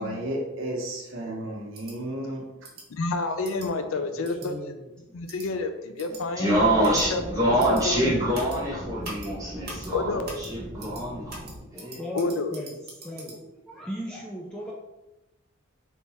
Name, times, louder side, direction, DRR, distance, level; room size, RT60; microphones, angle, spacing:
voice 1, 0.0-2.4, right 1 dB, 65° right, -1 dB, 0.9 m, -33 dB
sound 1, 1.7-1.9 2.6-2.8 3.4-3.7 4.2-4.5 5.3-5.5 6.0-6.2 6.8-7.0 7.6-7.8 8.3-8.6 9.0-9.3 9.6-9.9 10.2-10.5 10.8-11.0 11.3-13.4, right 2 dB, 45° right, 1.2 m, -42 dB
voice 2, 2.9-4.5 5.1-7.2 7.5-8.1 9.9-10.3 12.1-12.5, left 3 dB, 70° left, 7 dB, 0.4 m, -29 dB
voice 3, 3.7-5.1 11.5-14.7, equal, 5° left, -4 dB, 0.4 m, -39 dB
voice 4, 6.4-11.4 11.7-12.0, right 1 dB, 15° right, -7 dB, 1.4 m, -25 dB
sound 2, 6.5-11.6, equal, 45° left, 1.3 m, -38 dB
3.5 x 2.8 x 4.2 m, 0.97 s
head